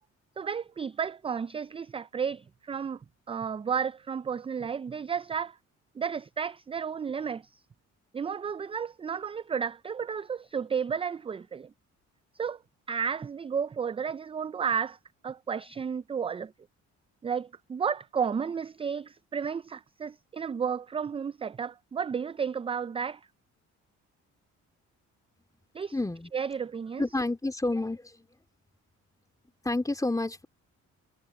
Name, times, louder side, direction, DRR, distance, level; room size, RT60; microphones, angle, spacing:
voice 1, 0.4-3.0 3.3-5.6 6.0-7.4 8.1-11.7 12.4-12.6 12.9-15.0 15.2-16.5 17.2-23.2 25.7-25.9 26.3-27.0, right 6 dB, 20° right, 0.3 m, -32 dB
voice 2, 25.9-26.3 27.0-28.3 29.6-30.4, left 2 dB, 10° left, 3.3 m, -29 dB
cardioid pair, 90°, 30 cm